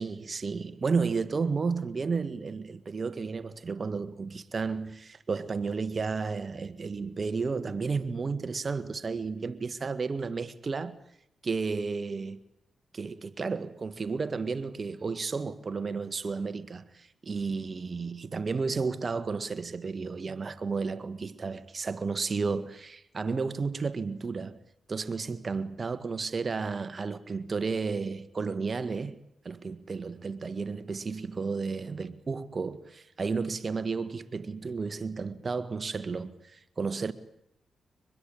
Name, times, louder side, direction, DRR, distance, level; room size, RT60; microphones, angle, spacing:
voice 1, 0.0-10.9 11.4-12.4 12.9-24.6 24.9-29.2 29.4-37.1, right 4 dB, 45° right, 1.6 m, -32 dB
24.5 x 21.0 x 8.8 m
supercardioid pair, 50°, 0 cm